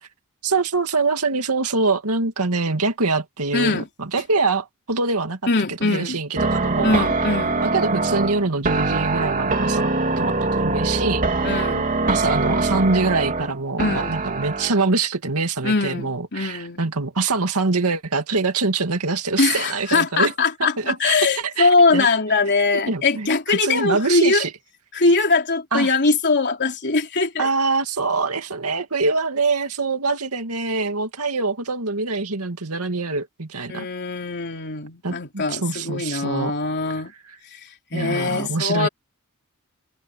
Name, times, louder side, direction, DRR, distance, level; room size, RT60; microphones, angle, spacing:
voice 1, 0.4-5.4 5.7-7.1 7.6-9.9 10.2-11.6 12.1-20.3 20.6-22.1 22.7-24.5 25.7-25.9 27.4-33.9 35.0-36.5 37.9-38.9, right 3 dB, 90° right, 2.3 m, -24 dB
voice 2, 3.5-3.9 5.5-6.2 6.8-7.6 11.4-11.8 13.8-14.2 15.6-16.8 19.4-24.5 24.9-27.5 33.7-37.1 37.5-38.9, left 3 dB, 50° left, 3.4 m, -21 dB
sound 1, 6.4-14.8, right 3 dB, 40° right, 2.8 m, -23 dB
head